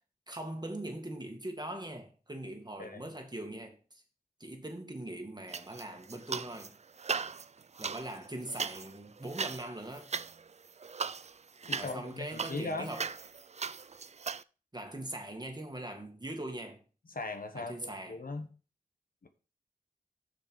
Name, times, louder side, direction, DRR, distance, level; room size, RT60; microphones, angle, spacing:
voice 1, 0.3-4.0 4.4-6.7 7.8-10.1 11.8-13.1 14.7-16.8 17.6-18.2, right 1 dB, 25° right, 2.0 m, -41 dB
voice 2, 2.8-3.1 11.7-12.9 17.1-18.5 19.2-19.3, left 3 dB, 65° left, 1.2 m, -39 dB
sound 1, 5.5-6.7 7.0-14.4, right 5 dB, 45° right, 0.4 m, -38 dB
7.0 x 6.7 x 4.7 m
wide cardioid pair, 60°, 16 cm